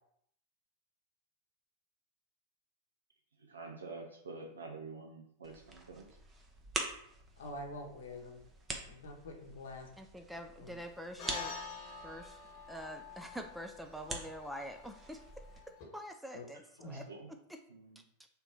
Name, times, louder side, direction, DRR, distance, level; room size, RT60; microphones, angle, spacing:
voice 1, 3.4-6.1 17.1-17.3 17.7-18.0, right 3 dB, 70° right, 2 dB, 0.6 m, -47 dB
sound 1, 5.4-15.6, right 3 dB, 20° right, 0.7 m, -46 dB
voice 2, 7.4-8.4 8.9-9.9 10.6-10.8 16.3-16.5 16.8-17.0, left 1 dB, 60° left, 2 dB, 0.9 m, -46 dB
voice 3, 10.0-11.6 12.0-12.4 12.7-15.2 15.9-17.6 18.2-18.3, equal, 5° right, 4 dB, 0.3 m, -46 dB
sound 2, 11.2-15.8, left 5 dB, 40° left, 1.3 m, -47 dB
3.5 x 2.9 x 4.5 m, 0.70 s
figure-of-eight pair, 90°, 0 cm